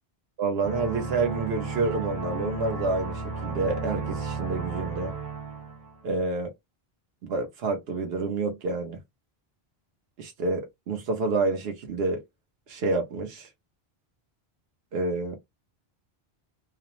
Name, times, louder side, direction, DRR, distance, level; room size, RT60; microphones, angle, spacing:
voice 1, 0.4-5.1 6.0-6.5 7.2-9.0 10.2-12.2 12.7-13.5 14.9-15.4, right 3 dB, 75° right, 0.9 m, -28 dB
sound 1, 0.6-6.0, right 3 dB, 25° right, 0.6 m, -33 dB
2.5 x 2.0 x 2.9 m
omnidirectional pair, 1.0 m